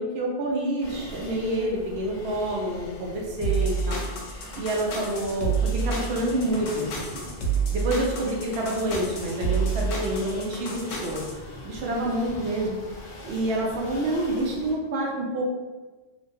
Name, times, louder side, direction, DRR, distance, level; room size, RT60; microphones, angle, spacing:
voice 1, 0.0-4.0 4.6-7.3 7.7-11.3 11.6-12.8 13.2-15.5, right 1 dB, 65° right, -2 dB, 0.7 m, -28 dB
sound 1, 0.8-14.7, equal, 30° left, 0.4 m, -42 dB
sound 2, 3.4-11.3, right 5 dB, 85° left, 1.0 m, -28 dB
3.1 x 2.2 x 2.6 m, 1.3 s
omnidirectional pair, 1.3 m